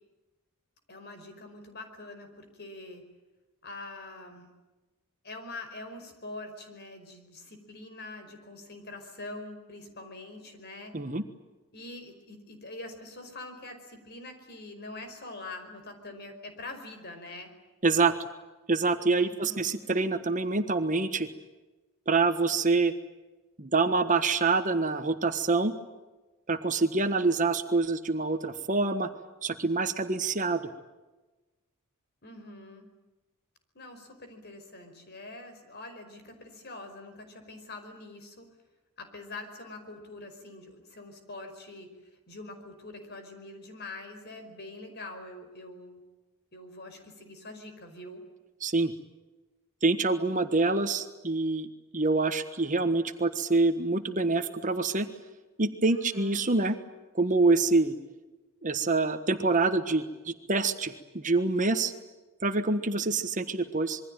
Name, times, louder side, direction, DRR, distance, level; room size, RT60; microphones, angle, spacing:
voice 1, 0.9-3.0 3.6-4.5 5.2-10.9 11.7-17.5 19.2-19.8 32.2-32.9 33.7-38.5 39.0-41.9 42.3-46.0 46.5-48.2 55.9-56.5, left 2 dB, 50° left, 7 dB, 5.1 m, -44 dB
voice 2, 17.8-18.1 18.7-21.3 22.1-22.9 23.6-25.7 26.5-29.1 29.4-30.7 48.6-48.9 49.8-55.1 55.6-56.8 57.1-58.0 58.6-61.9 62.4-64.0, right 3 dB, 35° right, 9 dB, 1.4 m, -26 dB
26.5 x 22.5 x 9.1 m, 1.1 s
head